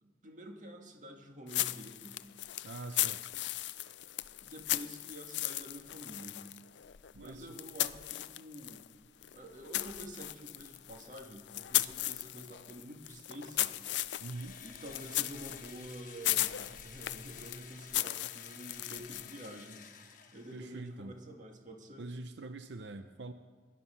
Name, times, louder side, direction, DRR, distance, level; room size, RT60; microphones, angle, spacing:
voice 1, 0.0-2.2 3.0-3.1 4.4-6.4 7.2-8.8 9.3-13.7 14.6-19.8 20.3-22.1, equal, 45° right, 3 dB, 1.9 m, -48 dB
sound 1, 1.5-8.9 9.2-19.5, left 15 dB, 80° left, 0.5 m, -37 dB
voice 2, 2.6-3.2 7.1-7.6 14.2-14.6 20.5-21.2 22.0-23.3, right 2 dB, 85° right, 9 dB, 0.6 m, -44 dB
Engine / Drill, 14.3-20.9, left 7 dB, 45° left, 1.3 m, -53 dB
21.5 x 11.5 x 5.7 m, 1.5 s
head